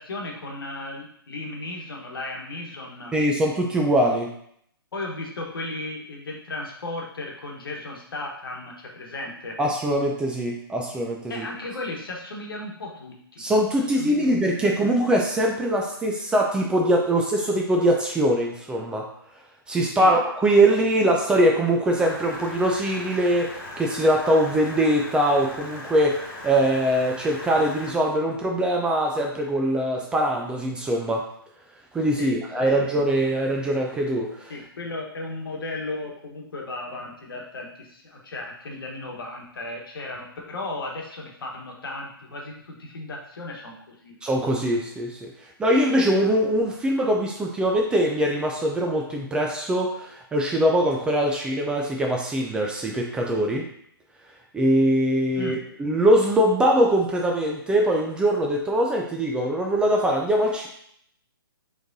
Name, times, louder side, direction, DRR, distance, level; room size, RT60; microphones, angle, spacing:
voice 1, 0.0-3.2 4.9-9.6 11.3-13.5 13.9-14.4 19.8-20.2 20.6-20.7 32.1-32.8 34.5-44.2 55.3-55.6, left 2 dB, 65° left, 0 dB, 1.2 m, -35 dB
voice 2, 3.1-4.3 9.6-11.5 13.4-19.1 19.7-26.2 26.4-31.2 31.9-34.5 44.2-45.3 45.6-53.6 54.5-60.7, right 1 dB, 5° right, 0 dB, 0.4 m, -22 dB
sound 1, 21.9-27.9, left 1 dB, 40° left, 1.7 m, -39 dB
4.8 x 3.2 x 2.6 m, 0.68 s
figure-of-eight pair, 130°, 13 cm